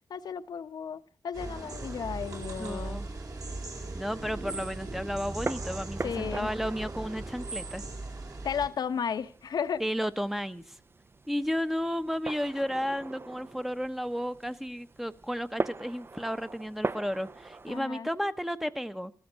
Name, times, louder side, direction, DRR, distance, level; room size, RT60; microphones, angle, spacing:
voice 1, 0.1-3.0 6.0-6.5 8.4-9.8 17.7-18.1, left 7 dB, 70° left, 11 dB, 0.9 m, -34 dB
sound 1, 1.3-8.7, right 2 dB, 55° right, 4.9 m, -38 dB
sound 2, 1.4-17.8, right 3 dB, 35° right, 0.7 m, -42 dB
voice 2, 2.6-3.1 3.9-7.8 9.8-10.8 11.3-19.1, equal, 5° right, 10 dB, 0.9 m, -33 dB
15.5 x 13.5 x 6.2 m, 0.43 s
cardioid pair, 85°, 7 cm